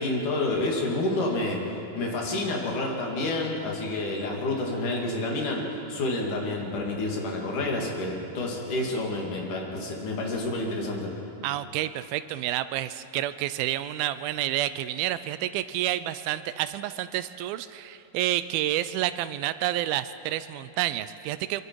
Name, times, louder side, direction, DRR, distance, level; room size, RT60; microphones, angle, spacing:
voice 1, 0.0-11.1, left 2 dB, 55° left, -1 dB, 3.8 m, -29 dB
voice 2, 11.4-21.6, right 13 dB, 80° right, 13 dB, 2.3 m, -29 dB
23.5 x 23.5 x 4.7 m, 2.8 s
omnidirectional pair, 4.5 m